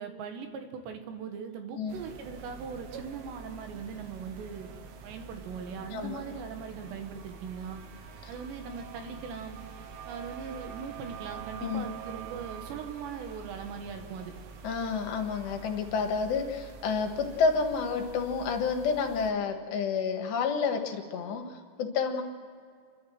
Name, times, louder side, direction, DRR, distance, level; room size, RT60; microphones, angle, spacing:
voice 1, 0.0-4.7 5.0-7.8 8.3-9.6 10.1-14.3, right 6 dB, 90° right, 5 dB, 3.9 m, -40 dB
sound 1, 1.9-19.3, right 6 dB, 70° right, 3.2 m, -46 dB
voice 2, 5.9-6.2 11.6-11.9 14.6-22.2, left 5 dB, 80° left, 4 dB, 3.8 m, -29 dB
29.0 x 12.0 x 7.7 m, 2.2 s
omnidirectional pair, 4.8 m